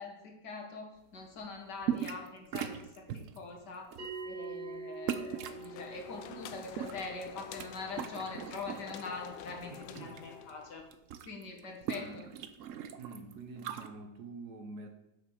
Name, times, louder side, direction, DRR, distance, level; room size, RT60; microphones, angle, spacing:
voice 1, 0.0-3.9 4.3-10.8 11.2-12.2, left 3 dB, 60° left, 1 dB, 2.0 m, -43 dB
sound 1, 1.8-2.3 2.5-3.4 3.9-4.1 5.1-5.7 6.5-7.7 7.9-9.1 9.5-10.2 10.5-10.6 10.8-13.9, right 9 dB, 90° right, 0.6 m, -39 dB
Bell, 4.0-9.0, right 4 dB, 30° right, 3.5 m, -46 dB
sound 2, 5.3-10.8, left 10 dB, 80° left, 1.3 m, -48 dB
voice 2, 9.7-10.3 11.9-12.3 13.0-14.9, right 3 dB, 60° right, 6 dB, 1.3 m, -47 dB
8.0 x 6.0 x 6.2 m, 0.91 s
omnidirectional pair, 2.1 m